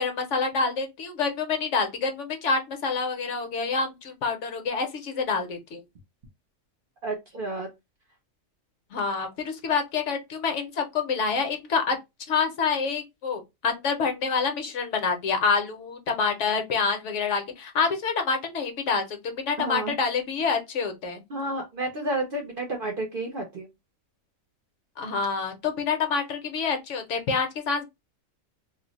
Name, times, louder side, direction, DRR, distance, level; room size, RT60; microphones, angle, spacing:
voice 1, 0.0-5.8 8.9-12.0 12.3-21.2 25.0-27.8, left 5 dB, 65° left, 0.9 m, -27 dB
voice 2, 7.0-7.7 19.6-19.9 21.3-23.7, right 2 dB, 55° right, 0.6 m, -31 dB
2.4 x 2.0 x 3.8 m
omnidirectional pair, 1.4 m